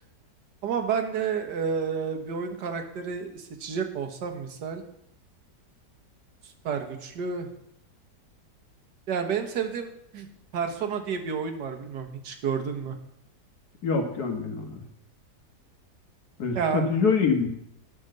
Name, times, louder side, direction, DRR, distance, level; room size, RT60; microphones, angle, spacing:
voice 1, 0.6-4.8 6.4-7.5 9.1-10.3 10.5-13.0 16.5-16.9, right 6 dB, 75° right, 5 dB, 1.8 m, -30 dB
voice 2, 13.8-14.7 16.4-17.5, left 5 dB, 65° left, 5 dB, 1.9 m, -25 dB
10.5 x 6.1 x 6.6 m, 0.76 s
omnidirectional pair, 1.8 m